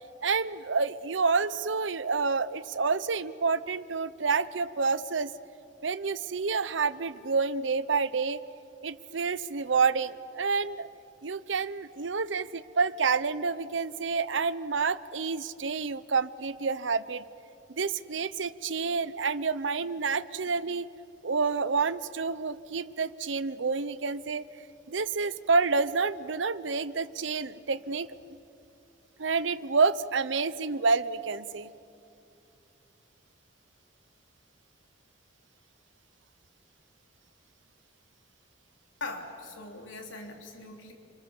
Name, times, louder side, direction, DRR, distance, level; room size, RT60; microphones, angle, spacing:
voice 1, 0.2-5.3 5.8-8.4 8.8-10.9 11.2-17.2 17.7-20.9 21.2-24.4 24.9-28.1 29.2-31.7, right 4 dB, 75° right, 16 dB, 0.8 m, -28 dB
voice 2, 39.0-40.9, left 3 dB, 85° left, 2 dB, 3.3 m, -41 dB
29.0 x 25.5 x 7.2 m, 2.6 s
head